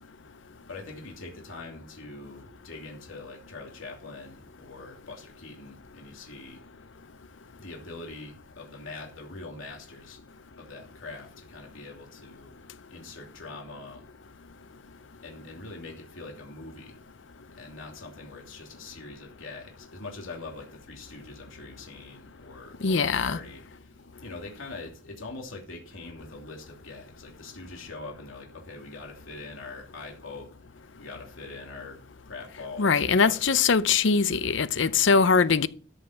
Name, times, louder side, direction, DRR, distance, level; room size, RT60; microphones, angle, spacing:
voice 1, 0.7-6.6 7.6-10.2 10.6-12.5 12.9-14.1 15.2-17.0 17.5-30.5 31.0-33.6, left 3 dB, 80° left, 2.9 m, -43 dB
voice 2, 22.8-23.4 32.8-35.7, left 5 dB, 65° left, 0.6 m, -22 dB
13.5 x 5.6 x 5.7 m
head